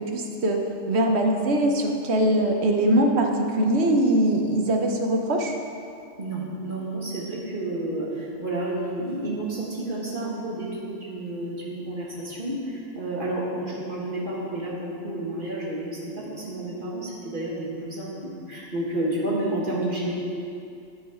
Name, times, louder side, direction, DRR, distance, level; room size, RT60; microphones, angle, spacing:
voice 1, 0.1-0.6 0.9-5.5, right 1 dB, 60° right, 2 dB, 1.1 m, -22 dB
voice 2, 6.2-20.1, right 1 dB, 45° right, -5 dB, 1.7 m, -30 dB
12.0 x 4.7 x 4.9 m, 2.5 s
omnidirectional pair, 1.3 m